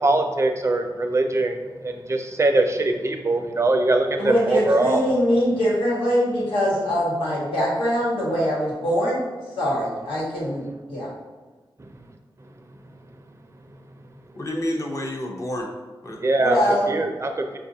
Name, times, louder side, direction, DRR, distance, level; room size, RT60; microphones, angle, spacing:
voice 1, 0.0-5.0 16.2-16.6 16.9-17.6, right 2 dB, 30° right, 5 dB, 0.4 m, -22 dB
voice 2, 4.2-9.3 9.6-11.1 16.4-17.0, equal, 85° left, -7 dB, 1.3 m, -23 dB
voice 3, 14.4-15.7 16.0-17.0, left 1 dB, 35° left, 1 dB, 0.6 m, -30 dB
5.1 x 2.4 x 2.7 m, 1.2 s
wide cardioid pair, 75°, 9 cm